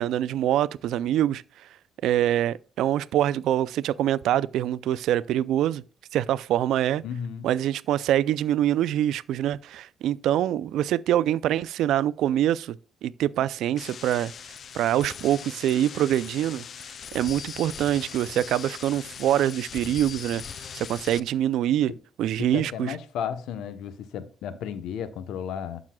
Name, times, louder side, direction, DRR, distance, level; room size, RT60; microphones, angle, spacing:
voice 1, 0.0-1.4 2.0-5.8 6.1-7.0 7.4-12.8 13.0-14.3 14.7-16.6 17.1-20.4 20.7-21.9 22.2-22.9, right 12 dB, 80° right, 0.3 m, -24 dB
voice 2, 7.0-7.5 21.9-22.0 22.4-25.8, left 8 dB, 85° left, 0.9 m, -33 dB
sound 1, 13.8-21.2, left 7 dB, 55° left, 0.5 m, -40 dB
12.0 x 6.2 x 2.3 m
cardioid pair, 90°, 0 cm